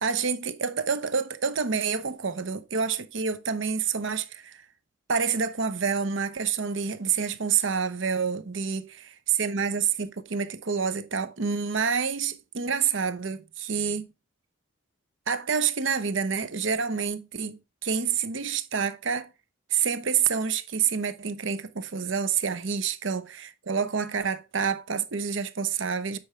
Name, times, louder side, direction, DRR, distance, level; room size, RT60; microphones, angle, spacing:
voice 1, 0.0-4.6 5.1-14.1 15.3-19.3 19.7-26.2, right 6 dB, 65° right, 0.8 m, -28 dB
8.6 x 5.0 x 3.2 m
head